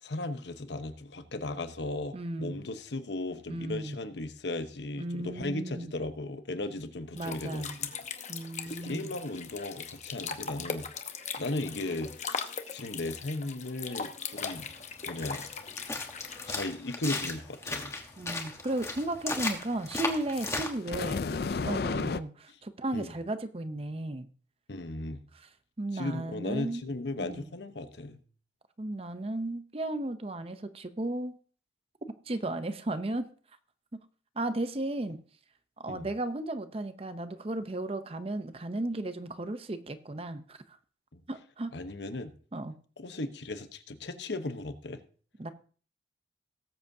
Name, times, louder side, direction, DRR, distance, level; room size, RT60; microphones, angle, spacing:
voice 1, 0.0-7.9 8.7-11.1 11.4-14.7 15.0-15.5 16.5-17.9 22.5-22.6 22.9-23.1 24.7-25.2 25.9-28.2 35.9-36.1 41.1-41.2 41.7-42.3 43.0-45.0, left 2 dB, 80° left, 9 dB, 1.0 m, -36 dB
voice 2, 2.1-2.6 3.5-4.0 5.0-5.9 7.2-7.8 8.3-9.2 18.2-24.3 25.8-26.9 27.2-27.5 28.8-31.4 32.3-33.3 33.9-34.0 34.4-35.2 35.8-40.8 41.3-41.7 42.5-42.8 45.4-45.5, right 2 dB, 30° right, 11 dB, 0.6 m, -35 dB
sound 1, 7.2-16.6, left 5 dB, 40° left, 0.9 m, -39 dB
sound 2, 14.4-20.7, left 3 dB, 15° left, 1.2 m, -36 dB
sound 3, 20.3-22.2, left 4 dB, 60° left, 0.4 m, -32 dB
18.5 x 7.8 x 2.7 m, 0.42 s
head